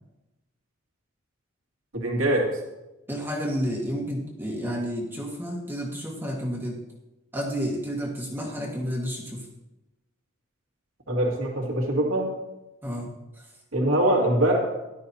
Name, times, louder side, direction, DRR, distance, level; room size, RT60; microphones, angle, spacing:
voice 1, 1.9-2.5 11.1-12.3 13.7-14.6, right 1 dB, 80° right, 0 dB, 2.3 m, -23 dB
voice 2, 3.1-6.8 7.3-9.4 12.8-13.1, equal, 10° right, -2 dB, 1.7 m, -30 dB
16.5 x 12.0 x 2.8 m, 1.0 s
head